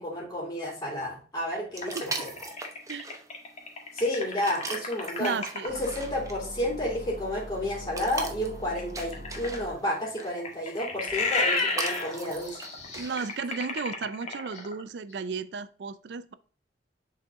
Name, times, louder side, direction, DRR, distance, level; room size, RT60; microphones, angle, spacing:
voice 1, 0.0-2.3 3.9-12.6, left 1 dB, 20° left, 2.8 m, -31 dB
sound 1, 1.8-5.9 8.7-14.8, left 3 dB, 40° left, 1.5 m, -32 dB
sound 2, 1.8-13.4, right 3 dB, 20° right, 0.9 m, -41 dB
voice 2, 5.2-5.7 12.9-16.3, right 5 dB, 70° right, 0.4 m, -34 dB
sound 3, 5.7-9.7, equal, 60° left, 1.8 m, -42 dB
6.6 x 4.1 x 3.6 m
head